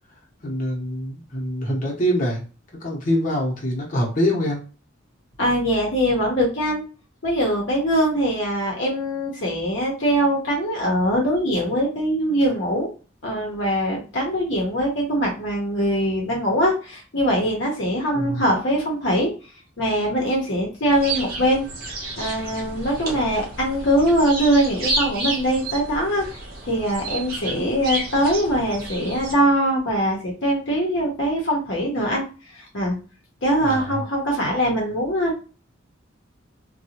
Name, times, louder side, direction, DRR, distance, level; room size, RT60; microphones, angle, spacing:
voice 1, 0.4-2.4 2.8-4.6 18.1-18.4 33.6-34.0, equal, 40° left, -3 dB, 1.0 m, -24 dB
voice 2, 5.4-6.8 7.2-12.9 13.2-19.3 19.8-21.7 22.2-26.4 26.7-32.2 32.5-33.0 33.4-35.4, equal, 65° left, -2 dB, 0.9 m, -22 dB
sound 1, 20.9-29.3, right 2 dB, 50° right, 0.8 m, -31 dB
2.7 x 2.3 x 2.9 m, 0.35 s
head